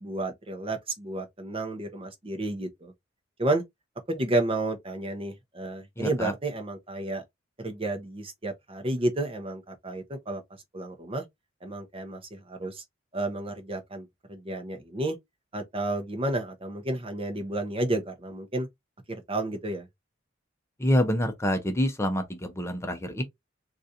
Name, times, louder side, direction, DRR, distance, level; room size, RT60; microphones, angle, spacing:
voice 1, 0.0-2.9 3.4-3.6 4.1-7.2 7.6-10.4 10.7-11.2 11.6-12.8 13.1-15.2 15.5-18.7 19.1-19.9, right 2 dB, 30° right, 0.7 m, -31 dB
voice 2, 6.0-6.3 20.8-23.2, equal, 15° left, 0.6 m, -26 dB
3.8 x 2.5 x 2.7 m
head